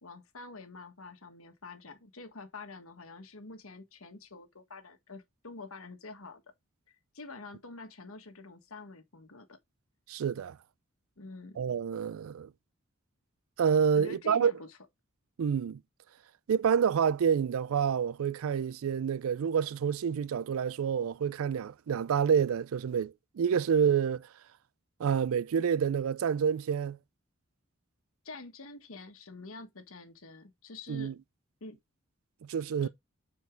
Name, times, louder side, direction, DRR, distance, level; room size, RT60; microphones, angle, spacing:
voice 1, 0.0-6.4 7.1-9.6 11.2-11.6 13.9-14.8 28.2-31.1 31.6-31.8 32.8-32.9, left 3 dB, 80° left, 1.5 m, -47 dB
voice 2, 10.1-10.6 11.6-12.5 13.6-14.5 15.4-15.8 16.5-24.3 25.0-27.0 30.9-31.1 32.5-32.9, right 7 dB, 80° right, 0.4 m, -28 dB
7.0 x 4.6 x 4.5 m
head